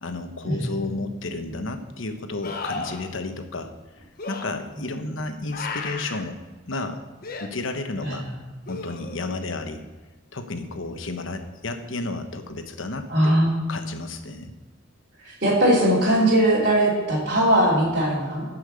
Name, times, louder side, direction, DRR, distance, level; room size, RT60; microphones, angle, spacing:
voice 1, 0.0-3.7 4.3-6.4 6.7-7.0 7.4-8.2 8.7-9.8 10.3-13.3 13.7-14.5, left 2 dB, 80° left, 7 dB, 1.0 m, -32 dB
sound 1, 0.8-0.9 2.4-3.1 4.2-4.4 5.5-6.3 7.2-7.5 8.7-9.3 12.5-12.6, left 3 dB, 50° left, 0.9 m, -34 dB
voice 2, 13.1-13.5 15.2-18.4, right 1 dB, 55° right, -9 dB, 3.1 m, -20 dB
11.5 x 5.7 x 6.8 m, 1.2 s
head